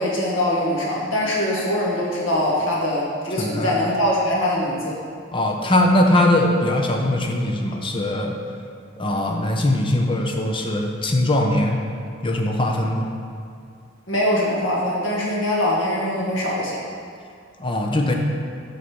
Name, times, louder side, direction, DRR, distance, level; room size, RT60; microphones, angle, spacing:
voice 1, 0.0-5.0 14.1-16.8, left 1 dB, 80° left, -4 dB, 1.5 m, -22 dB
voice 2, 3.4-3.7 5.3-8.4 9.0-11.8 12.2-13.1 17.6-18.1, left 1 dB, 25° left, 1 dB, 0.7 m, -21 dB
6.3 x 4.1 x 6.0 m, 2.2 s
head